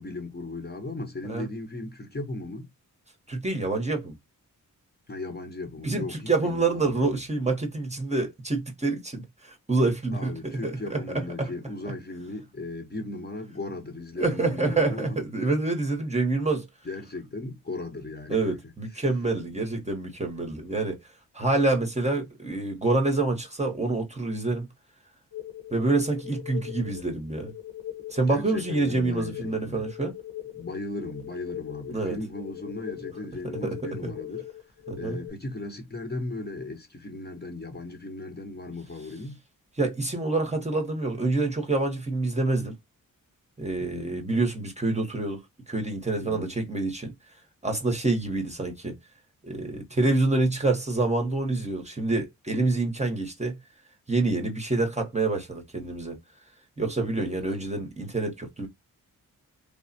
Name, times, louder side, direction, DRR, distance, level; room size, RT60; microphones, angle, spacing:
voice 1, 0.0-2.7 5.1-7.2 10.1-15.2 16.8-18.5 18.9-19.0 28.3-29.9 30.5-34.4 35.0-39.4 43.8-44.2 46.2-46.5 57.2-57.5, left 2 dB, 30° left, 0.8 m, -37 dB
voice 2, 3.3-4.2 5.8-11.0 11.4-11.5 14.2-16.7 18.3-21.0 21.3-24.7 25.7-27.5 28.1-30.1 31.9-32.2 33.6-34.1 34.9-35.2 39.8-42.7 43.6-45.4 45.7-47.1 47.6-49.0 49.4-53.6 54.1-56.2 56.8-58.7, right 3 dB, 20° right, 0.8 m, -27 dB
sound 1, 25.3-35.3, left 13 dB, 85° left, 1.1 m, -40 dB
3.2 x 2.0 x 2.6 m
cardioid pair, 65°, 35 cm